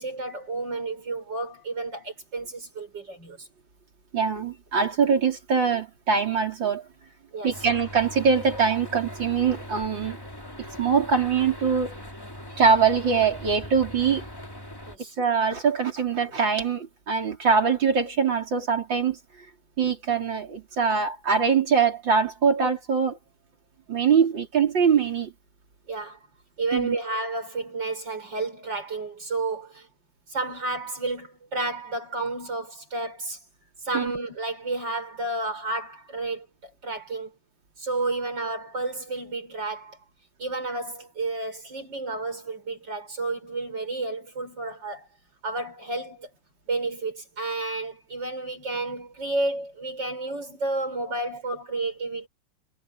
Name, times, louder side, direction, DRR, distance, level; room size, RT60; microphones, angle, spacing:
voice 1, 0.0-3.5 7.3-7.7 14.9-15.2 25.9-26.2 26.6-29.9 30.3-33.4 33.8-37.3 37.8-40.0 40.4-45.1 45.4-46.3 46.7-52.3, right 2 dB, 75° right, 6.7 m, -31 dB
voice 2, 4.1-6.8 7.4-10.2 10.6-12.0 12.6-14.2 15.2-19.2 19.8-23.2 23.9-25.3 26.7-27.0 33.9-34.1, right 6 dB, 90° right, 4.6 m, -23 dB
sound 1, 7.5-15.0, left 1 dB, 10° left, 3.1 m, -40 dB
omnidirectional pair, 2.0 m